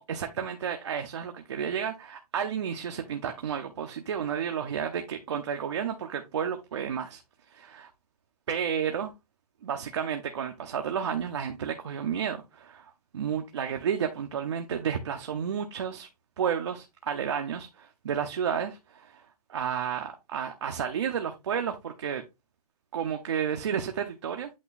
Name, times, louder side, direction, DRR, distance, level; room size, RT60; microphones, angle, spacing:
voice 1, 0.0-7.2 7.5-7.9 8.5-9.1 9.6-16.1 16.4-19.2 19.5-22.2 22.9-24.5, right 8 dB, 45° right, 0.8 m, -31 dB
8.5 x 3.0 x 3.9 m
hypercardioid pair, 175°, 20 cm